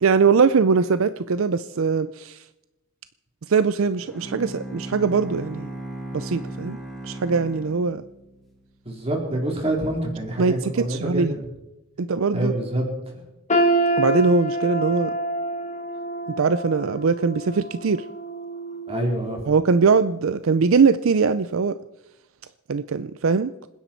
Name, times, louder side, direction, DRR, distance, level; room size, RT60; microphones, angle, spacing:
voice 1, 0.0-2.4 3.5-5.7 6.1-6.8 7.0-8.0 10.4-11.3 12.0-12.5 14.0-15.1 16.3-18.0 19.5-21.8 22.7-23.5, right 5 dB, 65° right, 14 dB, 0.5 m, -21 dB
Bowed string instrument, 4.1-8.5, right 1 dB, ahead, 2.8 m, -36 dB
voice 2, 8.9-11.3 12.3-12.8 18.9-19.4, right 1 dB, 30° right, 0 dB, 3.9 m, -26 dB
sound 1, 13.5-19.4 19.8-20.1 20.8-20.9, right 1 dB, 35° left, 1.3 m, -27 dB
27.0 x 10.5 x 4.5 m, 0.98 s
head